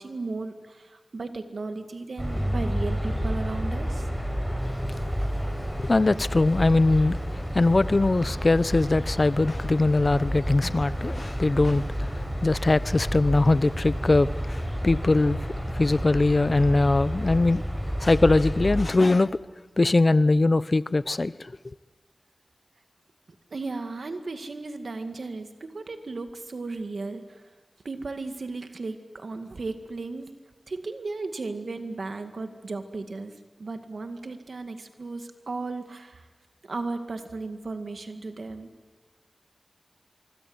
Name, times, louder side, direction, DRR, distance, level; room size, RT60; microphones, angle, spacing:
voice 1, 0.0-4.1 23.5-27.4 27.8-30.3 30.7-33.3 33.6-36.3 36.7-38.7, right 3 dB, 85° right, 2.1 m, -35 dB
sound 1, 2.2-18.8, equal, 10° right, 7.8 m, -30 dB
voice 2, 5.8-7.2 7.5-11.8 12.4-15.4 15.8-17.6 18.0-19.3 19.8-21.3, left 2 dB, 55° left, 0.8 m, -21 dB
25.0 x 24.5 x 8.0 m
cardioid pair, 40°, 0 cm